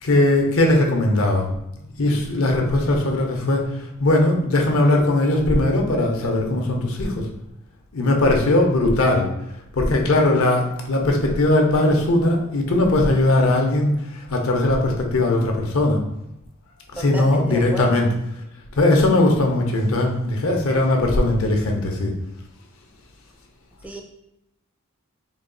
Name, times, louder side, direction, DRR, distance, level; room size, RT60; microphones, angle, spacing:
voice 1, 0.0-1.5 2.0-7.2 7.9-9.3 9.7-16.0 17.0-18.1 18.8-22.1, left 2 dB, 75° left, 2 dB, 0.7 m, -19 dB
voice 2, 17.0-18.0 23.8-24.0, equal, 5° right, 2 dB, 0.3 m, -32 dB
3.9 x 2.3 x 3.8 m, 0.85 s
head